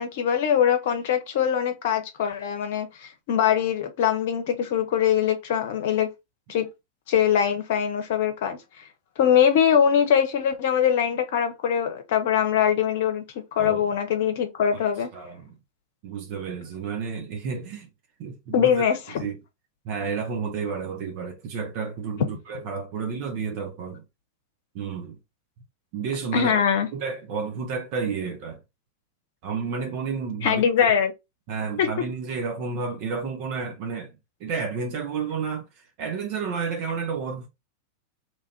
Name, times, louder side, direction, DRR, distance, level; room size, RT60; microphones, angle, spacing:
voice 1, 0.0-6.1 6.5-6.7 7.1-8.8 9.2-13.2 13.5-15.1 18.5-19.2 26.3-26.9 30.4-31.1 31.8-31.9, left 8 dB, 55° left, 0.8 m, -22 dB
voice 2, 15.1-15.5 16.0-17.9 18.2-18.9 19.2-19.4 19.8-24.0 24.7-25.2 25.9-26.6 26.9-28.6 29.4-30.9 31.5-37.5, right 5 dB, 45° right, 0.7 m, -31 dB
3.0 x 2.5 x 4.1 m
figure-of-eight pair, 90°, 0 cm